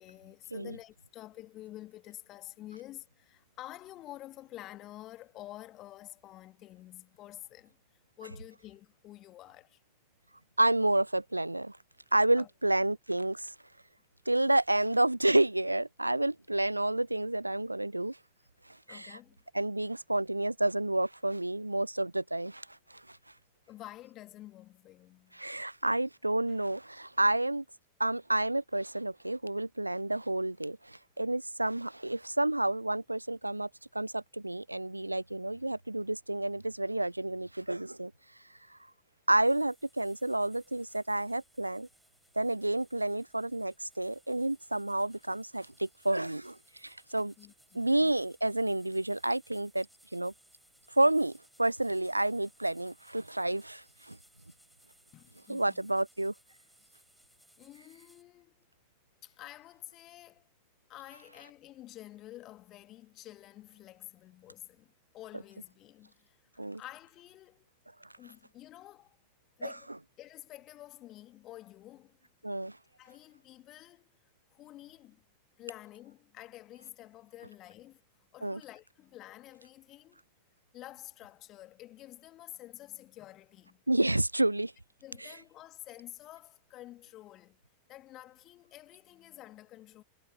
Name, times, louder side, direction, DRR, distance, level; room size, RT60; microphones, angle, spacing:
voice 1, 0.0-7.8 8.2-9.8 12.4-12.5 18.9-19.4 23.7-25.4 47.4-48.1 55.1-55.9 57.6-58.7 59.2-60.5 60.9-66.4 66.7-67.7 68.2-69.2 69.6-72.2 73.0-74.1 74.5-75.3 75.6-78.0 78.3-80.2 80.7-83.8 85.0-87.6 87.9-90.0, left 15 dB, 35° left, 2.0 m, -49 dB
voice 2, 10.6-11.8 12.1-13.5 14.3-18.2 18.9-19.2 19.5-23.2 25.3-27.6 28.0-33.7 33.9-38.1 39.3-41.9 42.4-47.3 47.7-49.9 50.1-50.3 50.9-54.2 55.5-56.3 66.6-66.8 69.6-69.7 72.4-72.8 78.4-78.6 83.9-84.7 85.2-85.3, right 1 dB, 85° right, 0.3 m, -30 dB
sound 1, 39.4-58.2, right 1 dB, ahead, 5.4 m, -65 dB
figure-of-eight pair, 90°, 0 cm